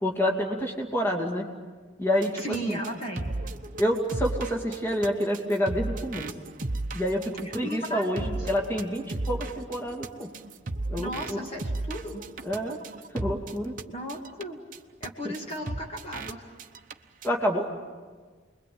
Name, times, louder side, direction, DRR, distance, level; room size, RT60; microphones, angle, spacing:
voice 1, 0.0-1.4 2.0-2.8 3.8-6.3 6.9-10.3 10.9-11.5 12.4-12.8 13.1-13.7 15.2-15.3 17.2-17.7, equal, 10° left, 1 dB, 2.6 m, -28 dB
sound 1, 2.2-13.8 14.1-14.4 14.7-14.8 15.0-15.1 15.3-15.4 15.7-16.3 16.6-16.9 17.2-17.3, right 2 dB, 45° right, 1.0 m, -35 dB
voice 2, 2.3-3.3 7.4-8.4 11.0-12.2 13.9-14.6 15.0-16.5, right 1 dB, 30° left, 1 dB, 2.3 m, -35 dB
29.0 x 22.0 x 8.7 m, 1.5 s
head